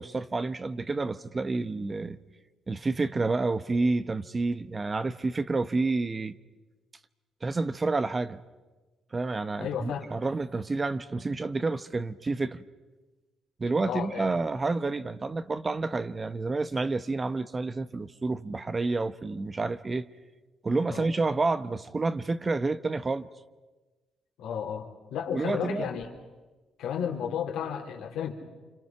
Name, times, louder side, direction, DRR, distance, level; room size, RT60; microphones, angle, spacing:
voice 1, 0.0-2.2 2.7-6.3 7.4-8.4 9.1-12.6 13.6-20.1 20.6-23.3 25.3-25.9, right 3 dB, 30° right, 1.0 m, -29 dB
voice 2, 9.6-10.1 13.8-14.3 20.8-21.1 24.4-26.1 26.8-28.3, left 8 dB, 85° left, 3.4 m, -33 dB
29.0 x 26.5 x 5.9 m
cardioid pair, 90°, 0 cm